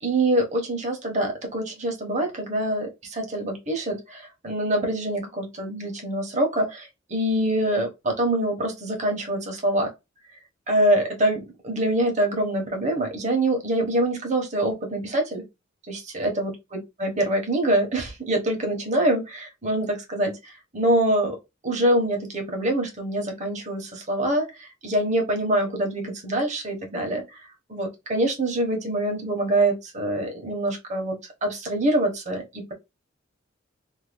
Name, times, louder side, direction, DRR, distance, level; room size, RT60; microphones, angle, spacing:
voice 1, 0.0-9.9 10.7-15.4 15.9-21.4 21.6-27.4 27.7-32.7, right 1 dB, 35° right, 0.9 m, -25 dB
2.6 x 2.2 x 3.4 m
head